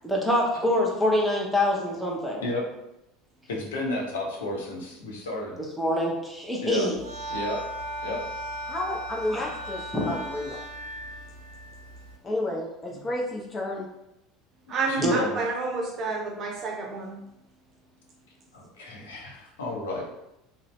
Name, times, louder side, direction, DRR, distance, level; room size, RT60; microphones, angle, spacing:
voice 1, 0.0-2.4 5.8-6.9 9.3-9.5 9.9-10.1 15.0-15.2, left 1 dB, ahead, -3 dB, 0.8 m, -25 dB
voice 2, 2.4-2.7 3.5-5.6 6.6-6.9 7.3-7.6 8.0-8.2 12.9-13.0 14.7-15.5 18.5-20.1, left 2 dB, 70° left, -1 dB, 0.6 m, -32 dB
sound 1, 6.9-12.2, right 1 dB, 80° right, 0.5 m, -37 dB
voice 3, 8.6-10.6 12.2-13.9, left 1 dB, 25° left, -1 dB, 0.4 m, -31 dB
voice 4, 14.7-17.2, right 3 dB, 40° right, -1 dB, 0.6 m, -29 dB
2.6 x 2.0 x 3.0 m, 0.87 s
figure-of-eight pair, 70°, 0 cm